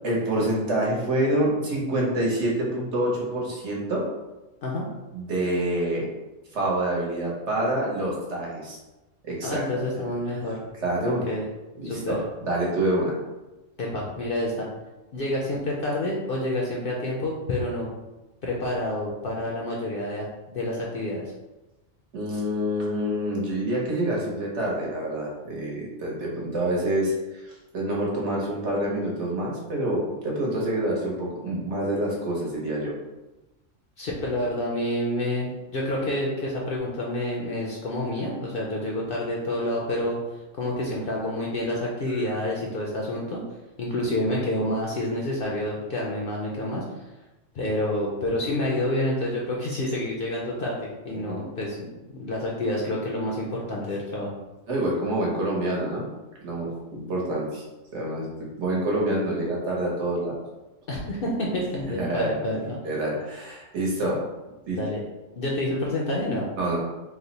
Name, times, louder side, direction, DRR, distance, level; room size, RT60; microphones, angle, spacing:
voice 1, 0.0-4.0 5.1-6.1 6.5-8.8 9.3-9.6 10.8-11.3 11.8-13.2 22.1-32.9 51.1-51.4 54.7-56.0 56.4-57.6 57.9-58.3 58.6-60.4 62.0-64.2 64.7-64.8 66.6-66.8, right 1 dB, 65° right, -3 dB, 1.2 m, -27 dB
voice 2, 9.4-10.6 11.1-11.4 11.8-12.2 13.8-14.7 15.1-17.9 18.4-20.3 20.5-21.2 34.0-43.4 43.8-47.0 47.5-51.8 52.2-54.3 60.9-62.8 64.7-65.0 65.4-66.5, left 1 dB, 60° left, -3 dB, 0.6 m, -28 dB
3.1 x 2.1 x 3.9 m, 1.1 s
omnidirectional pair, 1.3 m